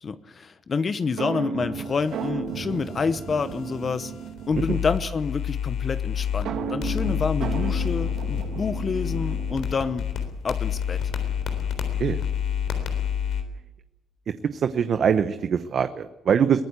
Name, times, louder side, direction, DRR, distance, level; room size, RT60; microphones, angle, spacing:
voice 1, 0.0-4.1 4.5-10.1 10.4-11.1, left 5 dB, 40° left, 12 dB, 1.0 m, -28 dB
sound 1, 1.2-4.9 6.5-10.1, right 6 dB, 80° right, 2.2 m, -34 dB
sound 2, 1.8-6.5 6.8-13.4, left 8 dB, 75° left, 3.7 m, -29 dB
voice 2, 14.5-16.6, right 7 dB, 55° right, 10 dB, 0.9 m, -23 dB
23.0 x 15.0 x 8.2 m, 0.97 s
cardioid pair, 90°, 0 cm